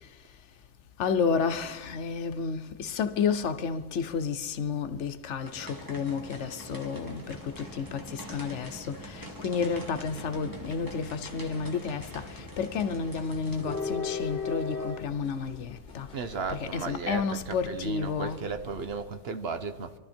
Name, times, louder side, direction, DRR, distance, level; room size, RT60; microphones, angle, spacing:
voice 1, 1.0-16.1 16.5-18.5, left 5 dB, 75° left, 1.1 m, -31 dB
sound 1, 5.4-13.9, right 1 dB, 15° right, 2.0 m, -44 dB
sound 2, 7.2-19.0, left 5 dB, 50° left, 1.3 m, -41 dB
voice 2, 16.1-20.0, right 5 dB, 60° right, 1.1 m, -35 dB
24.0 x 12.5 x 4.4 m
omnidirectional pair, 1.2 m